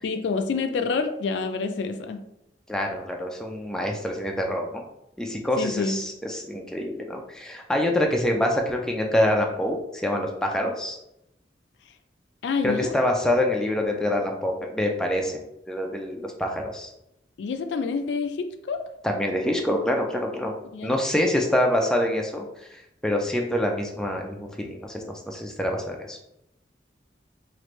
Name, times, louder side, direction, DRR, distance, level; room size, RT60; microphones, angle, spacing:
voice 1, 0.0-2.2 5.6-6.0 12.4-13.0 17.4-18.8 20.7-20.9, left 4 dB, 85° left, 8 dB, 0.3 m, -27 dB
voice 2, 2.7-4.8 5.2-11.0 12.6-15.4 15.7-16.9 19.0-20.5 20.8-22.5 23.0-26.2, left 1 dB, 5° left, 1 dB, 0.3 m, -26 dB
3.1 x 2.5 x 3.1 m, 0.83 s
head